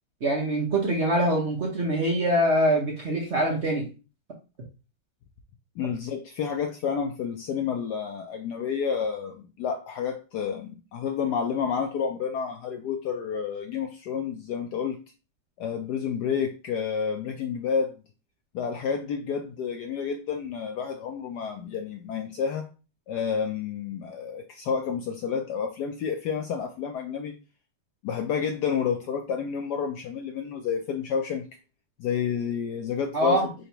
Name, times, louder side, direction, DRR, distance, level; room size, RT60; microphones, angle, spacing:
voice 1, 0.2-3.8 33.1-33.5, right 1 dB, 45° right, -1 dB, 0.9 m, -24 dB
voice 2, 5.8-15.0 15.6-17.9 18.5-22.7 23.1-27.3 28.0-31.5 32.0-33.4, left 6 dB, 75° left, 4 dB, 1.0 m, -30 dB
4.0 x 2.8 x 4.4 m, 0.31 s
omnidirectional pair, 2.2 m